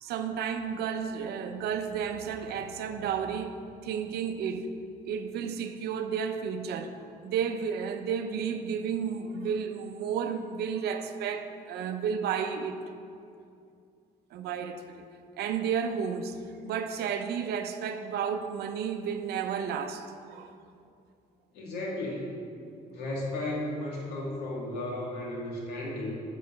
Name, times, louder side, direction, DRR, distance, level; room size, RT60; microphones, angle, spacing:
voice 1, 0.0-4.7 5.0-12.8 14.3-15.0 15.4-16.4 16.6-20.5, right 7 dB, 75° right, 0.6 m, -32 dB
voice 2, 21.5-22.3 22.9-26.2, left 1 dB, 80° left, 2.2 m, -34 dB
7.4 x 4.9 x 7.1 m
cardioid pair, 110°, 17 cm